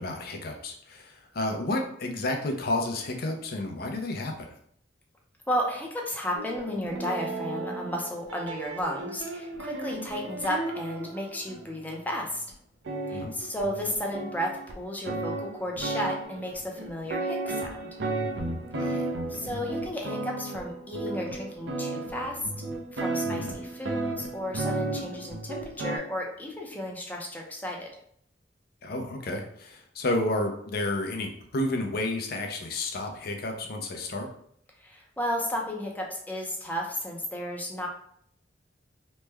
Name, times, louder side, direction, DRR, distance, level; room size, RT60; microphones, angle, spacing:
voice 1, 0.0-4.5 13.1-13.4 18.7-19.1 23.2-23.5 28.8-34.3, left 2 dB, 60° left, 3 dB, 0.5 m, -31 dB
voice 2, 5.5-12.4 13.1-17.9 18.8-22.4 22.9-27.9 34.8-37.9, equal, 10° left, 0 dB, 0.5 m, -33 dB
sound 1, 6.3-11.9 12.5-12.6 12.8-26.0, right 2 dB, 85° right, 0.6 m, -34 dB
3.1 x 2.1 x 3.3 m, 0.66 s
head